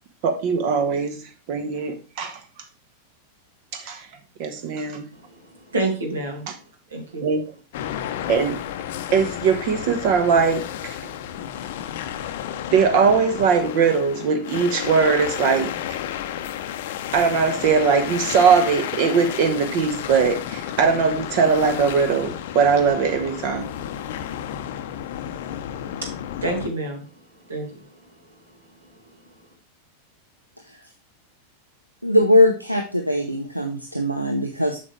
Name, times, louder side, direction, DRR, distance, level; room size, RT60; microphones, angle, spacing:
voice 1, 0.2-1.2 1.5-2.4 3.7-4.1 4.4-5.0 6.5-6.6 7.2-7.4 8.3-8.6 9.1-11.0 12.7-15.7 17.1-23.6, right 5 dB, 45° right, 1.1 m, -20 dB
voice 2, 5.1-6.5 6.9-7.2 25.7-27.1 27.5-27.9, right 2 dB, 70° right, 2.2 m, -29 dB
sound 1, 7.7-26.7, left 10 dB, 55° left, 0.7 m, -32 dB
voice 3, 32.0-34.8, left 1 dB, 90° right, 0.7 m, -20 dB
7.6 x 6.1 x 3.2 m
figure-of-eight pair, 90°, 0 cm